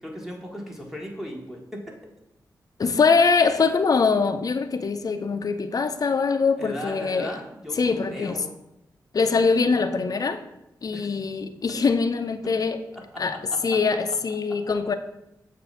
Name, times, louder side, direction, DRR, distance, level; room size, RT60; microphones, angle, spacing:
voice 1, 0.0-1.9 6.6-8.6 10.9-11.1 11.7-11.8 12.9-13.6, equal, 5° right, -1 dB, 1.6 m, -37 dB
voice 2, 2.8-7.3 7.8-8.4 9.1-10.4 10.8-12.8 13.2-13.4 13.6-14.9, left 4 dB, 50° left, 9 dB, 0.5 m, -23 dB
6.9 x 2.6 x 5.6 m, 0.86 s
cardioid pair, 50°, 8 cm